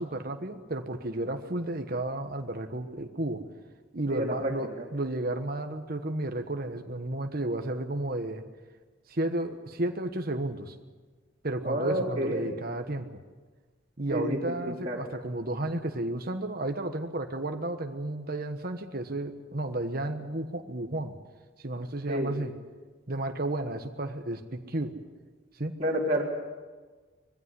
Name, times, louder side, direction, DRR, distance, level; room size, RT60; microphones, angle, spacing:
voice 1, 0.0-3.4 3.9-8.4 9.1-10.7 11.4-13.0 14.0-21.2 21.6-22.5 23.1-24.9 25.6-25.8, right 1 dB, 45° right, 6 dB, 1.3 m, -32 dB
voice 2, 4.1-4.5 11.6-12.5 14.1-15.0 22.1-22.4 25.8-26.2, equal, 30° right, -5 dB, 3.7 m, -29 dB
21.0 x 15.5 x 9.9 m, 1.4 s
head